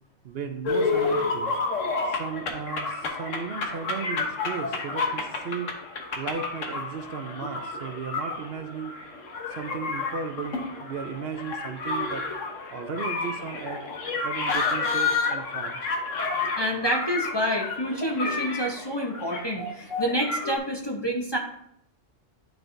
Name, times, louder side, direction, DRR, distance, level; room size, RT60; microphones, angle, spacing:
voice 1, 0.2-1.6 2.0-5.7 6.2-9.0 9.6-12.3 12.7-13.8 14.2-15.8, right 6 dB, 60° right, 6 dB, 0.8 m, -35 dB
sound 1, 0.7-20.6, left 4 dB, 90° left, 1.3 m, -30 dB
voice 2, 16.6-21.4, equal, 25° left, -1 dB, 0.7 m, -28 dB
10.5 x 4.6 x 2.6 m, 0.74 s
omnidirectional pair, 1.3 m